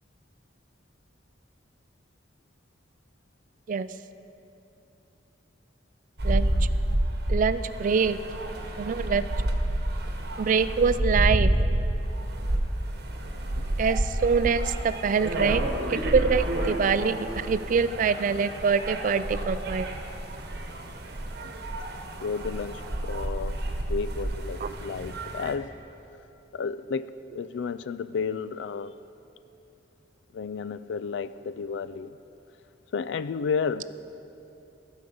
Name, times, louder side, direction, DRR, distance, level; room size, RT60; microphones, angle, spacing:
sound 1, 6.2-25.5, right 1 dB, 60° right, 1.1 m, -29 dB
voice 1, 7.3-8.2 8.8-9.3 10.4-11.5 13.8-19.9 24.6-24.7, right 5 dB, 45° right, 13 dB, 0.3 m, -25 dB
voice 2, 13.3-13.7 21.4-21.5 22.2-23.6 23.9-25.8 26.5-29.0 30.3-32.2 32.9-33.8, left 5 dB, 75° left, 15 dB, 0.3 m, -32 dB
15.0 x 5.2 x 7.0 m, 3.0 s
head